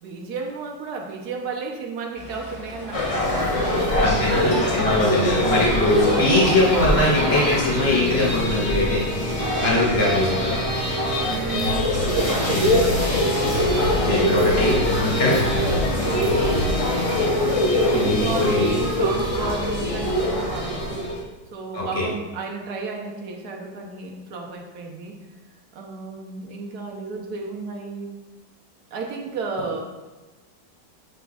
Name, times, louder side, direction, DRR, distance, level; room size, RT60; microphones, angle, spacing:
voice 1, 0.0-5.3 5.9-6.6 11.2-13.4 13.8-14.8 16.0-21.0 21.5-25.2 25.7-28.1 28.9-29.8, right 4 dB, 65° right, 1 dB, 1.2 m, -33 dB
sound 1, 2.1-16.4, right 1 dB, 15° right, 1.9 m, -39 dB
sound 2, 2.9-21.2, left 1 dB, 65° left, 0.3 m, -23 dB
voice 2, 4.0-9.1 9.6-10.6 14.0-15.4 17.9-18.7 21.7-22.0, left 2 dB, 10° left, -7 dB, 1.9 m, -22 dB
sound 3, 11.5-16.9, equal, 80° left, 2.1 m, -30 dB
8.3 x 5.9 x 2.3 m, 1.2 s
omnidirectional pair, 2.0 m